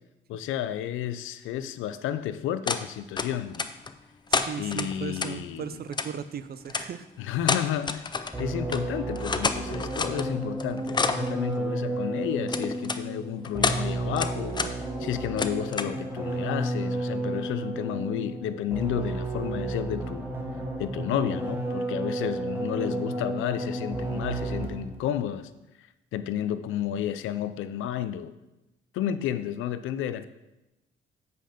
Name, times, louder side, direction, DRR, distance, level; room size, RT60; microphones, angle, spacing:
voice 1, 0.3-3.7 4.6-5.8 7.2-8.1 8.4-14.6 15.0-20.3 20.8-25.5 25.8-25.9 26.1-28.3 28.9-30.3, left 10 dB, 85° left, 13 dB, 0.5 m, -31 dB
sound 1, 2.7-2.8 3.2-3.9 4.3-5.3 5.9-6.1 6.7-6.9 7.4-8.4 8.7-8.8 9.1-10.3 10.6-11.3 12.5-13.0 13.4-13.8 14.2-14.7 15.0-16.0, left 4 dB, 20° left, 0.5 m, -28 dB
voice 2, 4.3-7.1, right 7 dB, 50° right, 13 dB, 0.5 m, -37 dB
sound 2, 8.3-25.0, right 2 dB, 10° right, 1.4 m, -32 dB
7.8 x 5.5 x 5.1 m, 0.97 s
cardioid pair, 90°, 20 cm